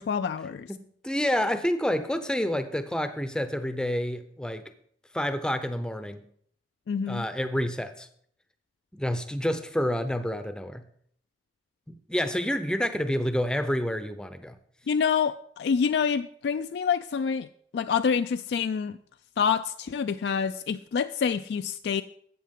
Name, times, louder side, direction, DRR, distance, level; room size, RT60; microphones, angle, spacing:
voice 1, 0.0-0.7 6.9-7.2 14.9-17.5 17.7-19.0 19.4-22.0, left 6 dB, 70° left, 9 dB, 0.3 m, -27 dB
voice 2, 0.7-4.7 5.1-6.2 7.1-8.1 8.9-10.8 11.9-14.5, equal, 5° left, 10 dB, 0.6 m, -28 dB
13.0 x 8.3 x 3.7 m, 0.64 s
head